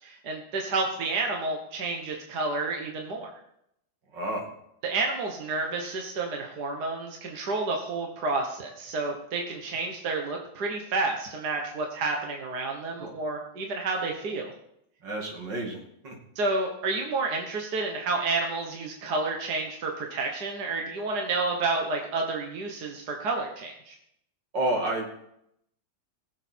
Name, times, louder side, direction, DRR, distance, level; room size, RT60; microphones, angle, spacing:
voice 1, 0.0-3.3 4.8-14.5 16.4-24.0, right 3 dB, 65° right, 1 dB, 1.9 m, -30 dB
voice 2, 4.1-4.5 13.0-13.1 15.0-16.1 24.5-25.3, right 1 dB, 80° right, 0 dB, 3.2 m, -30 dB
20.0 x 7.3 x 4.5 m, 0.76 s
omnidirectional pair, 1.9 m